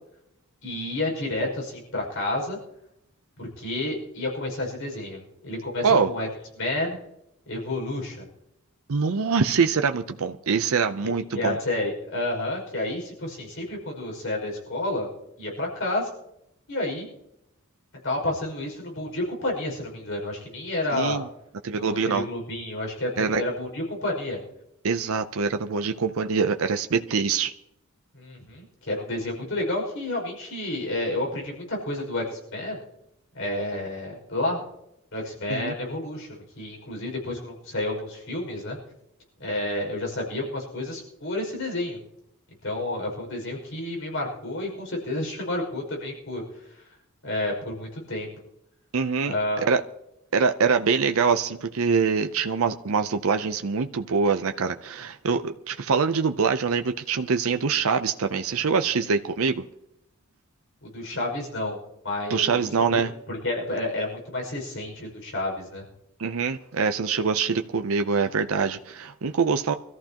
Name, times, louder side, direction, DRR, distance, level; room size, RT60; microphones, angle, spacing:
voice 1, 0.6-2.6 3.4-6.3 6.6-7.0 7.5-8.3 11.0-15.1 15.4-16.1 16.7-17.1 18.0-21.2 21.8-24.4 28.1-32.8 33.3-34.6 35.1-38.8 39.4-42.0 42.6-46.8 47.2-48.3 49.2-49.6 60.8-61.8 62.0-65.9, left 1 dB, 65° left, 0 dB, 5.6 m, -30 dB
voice 2, 8.9-11.6 20.9-21.2 21.6-22.3 23.2-23.4 24.8-27.5 35.5-35.7 48.9-49.3 49.6-49.8 50.3-59.6 62.3-63.1 66.2-69.7, right 5 dB, 70° right, 7 dB, 0.6 m, -24 dB
24.5 x 14.0 x 2.9 m, 0.82 s
head